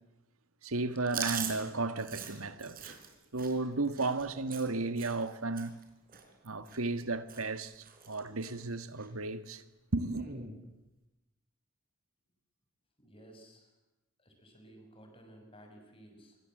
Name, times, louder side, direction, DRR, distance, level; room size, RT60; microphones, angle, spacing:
voice 1, 0.6-3.0 3.3-5.8 6.4-9.6 9.9-10.3, right 3 dB, 80° right, 1.6 m, -34 dB
Chewing mastication, 1.1-5.3 5.6-5.8 6.1-7.0 7.3-7.6 7.8-8.5 9.0-9.1 10.1-10.5, right 7 dB, 40° right, 4.5 m, -42 dB
sound 1, 3.5-3.7 4.2-4.5 5.0-5.3 6.0-6.3 7.1-7.2 7.9-8.4 9.0-9.2, right 1 dB, 25° right, 7.7 m, -62 dB
voice 2, 13.0-13.7 14.2-16.4, right 1 dB, 25° left, 6.4 m, -56 dB
27.5 x 23.5 x 7.8 m
head